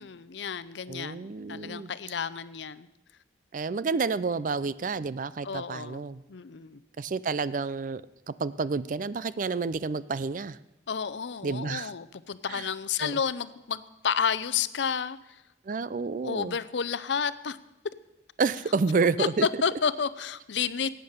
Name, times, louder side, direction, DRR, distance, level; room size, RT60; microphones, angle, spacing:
voice 1, 0.0-2.9 5.4-6.0 6.3-6.8 10.9-15.4 16.2-17.6 19.2-20.9, left 6 dB, 75° left, 16 dB, 0.6 m, -31 dB
voice 2, 0.9-1.9 3.5-6.2 7.0-8.0 8.3-10.6 11.4-11.9 12.5-12.7 13.0-13.2 15.7-16.6 18.4-19.5, right 4 dB, 45° right, 17 dB, 0.4 m, -29 dB
16.0 x 9.0 x 6.6 m, 0.93 s
head